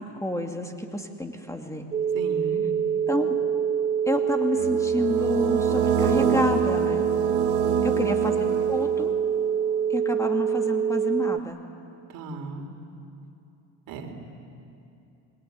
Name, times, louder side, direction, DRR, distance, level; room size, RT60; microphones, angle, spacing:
voice 1, 0.0-1.9 3.1-3.4 4.1-7.1 8.0-8.3 8.7-9.1 9.9-11.6, left 1 dB, 10° left, 3 dB, 2.5 m, -29 dB
sound 1, 1.9-11.4, right 8 dB, 25° right, 0.7 m, -25 dB
voice 2, 2.1-2.7 7.7-8.2 12.1-12.6 13.9-14.1, right 5 dB, 65° right, 4 dB, 3.7 m, -35 dB
sound 2, 4.6-9.2, right 7 dB, 80° right, 3.2 m, -28 dB
26.5 x 22.5 x 9.6 m, 2.7 s
supercardioid pair, 95°, 36 cm